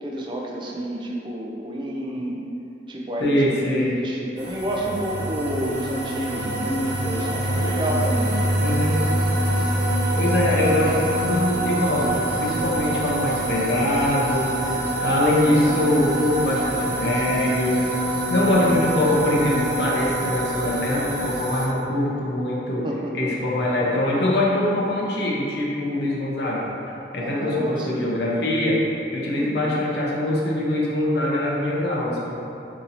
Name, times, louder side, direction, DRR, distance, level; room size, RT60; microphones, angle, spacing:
voice 1, 0.0-2.3 2.9-8.3 22.8-23.3 27.2-28.1 29.3-29.5, right 1 dB, 25° right, -2 dB, 0.4 m, -29 dB
voice 2, 3.2-4.0 8.6-9.0 10.2-17.8 18.3-22.9 23.1-26.7 27.1-28.8 29.1-32.4, left 1 dB, 65° left, -4 dB, 0.6 m, -23 dB
sound 1, 4.4-21.7, right 1 dB, 70° right, 0.6 m, -25 dB
2.9 x 2.6 x 3.9 m, 2.8 s
head